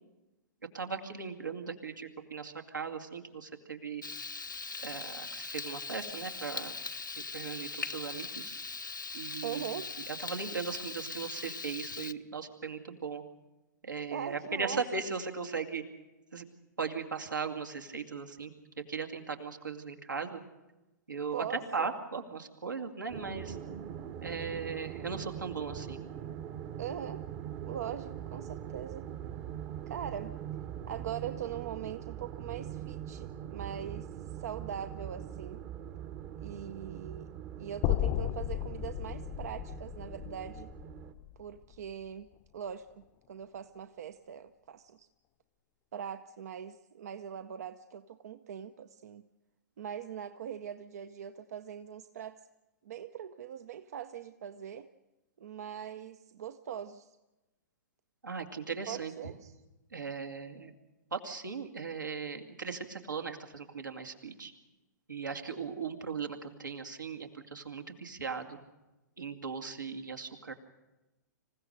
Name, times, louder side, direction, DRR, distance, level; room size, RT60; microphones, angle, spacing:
voice 1, 0.7-4.0 4.8-6.8 7.3-8.5 9.1-9.6 10.1-13.2 13.8-15.8 16.3-16.5 16.8-18.5 18.9-20.4 21.1-23.6 24.2-26.0 58.2-59.3 59.9-60.7 61.1-64.5 65.1-68.6 69.2-70.5, right 5 dB, 80° right, 4 dB, 2.3 m, -38 dB
Frying (food), 4.0-12.1, left 4 dB, 85° left, 0.7 m, -40 dB
voice 2, 9.4-9.9 14.1-14.9 21.3-21.9 26.8-27.3 27.6-29.1 29.9-30.4 30.9-35.6 36.4-37.3 37.6-40.7 41.4-45.1 45.9-49.3 49.8-52.5 52.8-54.9 55.4-57.2 58.9-59.6, right 9 dB, 55° right, 11 dB, 0.7 m, -41 dB
sound 1, 23.1-41.1, right 10 dB, 30° right, 1.0 m, -42 dB
sound 2, 37.8-42.0, left 14 dB, 30° left, 0.7 m, -34 dB
26.5 x 15.5 x 6.6 m, 1.0 s
figure-of-eight pair, 115°, 10 cm